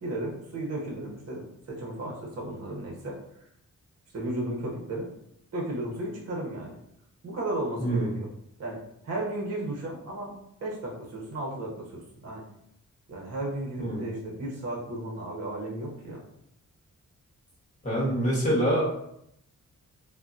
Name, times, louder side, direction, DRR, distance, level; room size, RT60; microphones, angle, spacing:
voice 1, 0.0-3.4 4.1-5.1 5.5-6.8 7.2-8.3 8.6-12.4 13.1-16.3, right 1 dB, 50° right, -2 dB, 0.8 m, -34 dB
voice 2, 17.8-18.8, right 1 dB, 20° left, -5 dB, 1.1 m, -25 dB
3.5 x 2.1 x 2.6 m, 0.75 s
wide cardioid pair, 135°, 32 cm